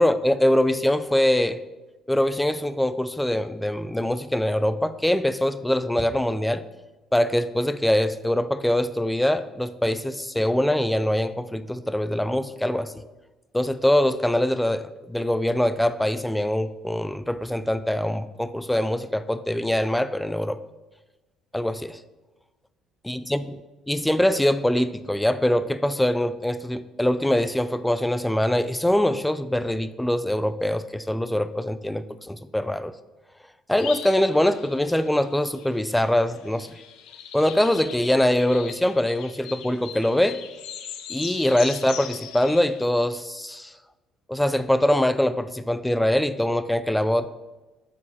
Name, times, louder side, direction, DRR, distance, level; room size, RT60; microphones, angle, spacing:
voice 1, 0.0-1.6 2.1-6.6 7.1-12.9 13.5-20.6 21.5-22.0 23.1-23.4 23.9-32.9 33.7-36.8 37.3-40.4 41.1-43.7 44.3-47.3, left 1 dB, 5° left, 13 dB, 0.3 m, -23 dB
sound 1, 33.8-42.8, left 9 dB, 90° left, 0.7 m, -40 dB
8.3 x 4.4 x 5.5 m, 1.1 s
cardioid pair, 155°, 0 cm